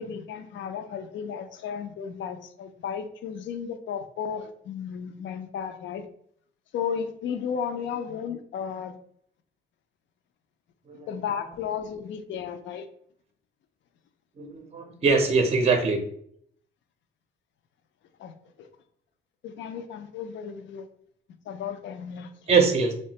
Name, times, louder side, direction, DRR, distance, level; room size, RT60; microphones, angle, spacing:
voice 1, 0.0-6.1 6.7-9.0 11.1-12.9 18.2-18.7 19.4-20.9 21.5-22.6, left 7 dB, 70° left, 8 dB, 0.4 m, -34 dB
voice 2, 14.4-16.0 22.5-22.9, right 4 dB, 30° right, 5 dB, 0.5 m, -22 dB
3.0 x 2.2 x 2.8 m, 0.65 s
cardioid pair, 90°, 20 cm